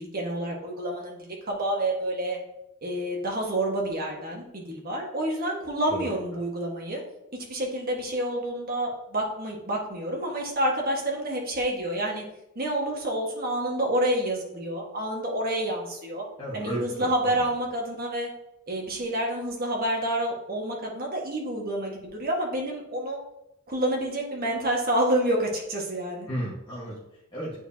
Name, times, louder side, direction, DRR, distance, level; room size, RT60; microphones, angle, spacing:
voice 1, 0.0-2.4 2.8-7.0 7.4-12.2 12.5-16.2 16.5-18.3 18.7-23.2 23.7-26.3, right 1 dB, 40° right, -1 dB, 1.5 m, -28 dB
voice 2, 16.4-17.5 26.3-27.6, right 1 dB, 20° left, -8 dB, 1.3 m, -34 dB
8.9 x 4.7 x 2.8 m, 0.85 s
head